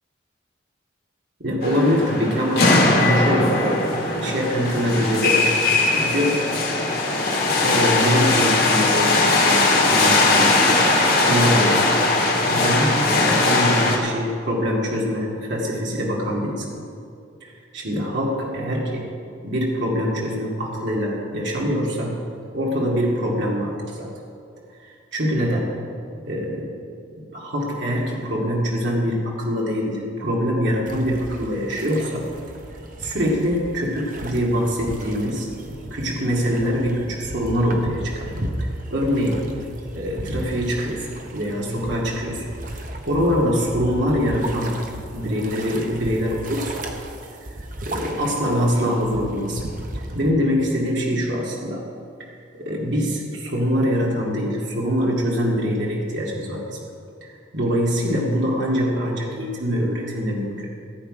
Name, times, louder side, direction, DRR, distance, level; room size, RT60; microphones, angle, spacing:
voice 1, 1.4-2.7 2.9-3.8 4.2-5.4 5.7-6.5 7.6-10.8 11.1-11.9 12.5-16.8 17.4-19.0 19.4-22.2 22.5-24.1 24.8-25.7 26.2-26.7 27.1-32.3 33.0-35.5 35.8-38.3 38.6-39.4 39.9-42.5 43.0-44.7 45.1-46.9 47.8-49.6 49.9-51.9 52.5-56.8 57.2-60.7, equal, 75° right, -3 dB, 2.3 m, -24 dB
sound 1, 1.6-14.0, left 2 dB, 55° left, 2.1 m, -19 dB
sound 2, 30.9-50.3, right 1 dB, 45° right, 1.1 m, -35 dB
16.5 x 8.4 x 5.0 m, 2.4 s
head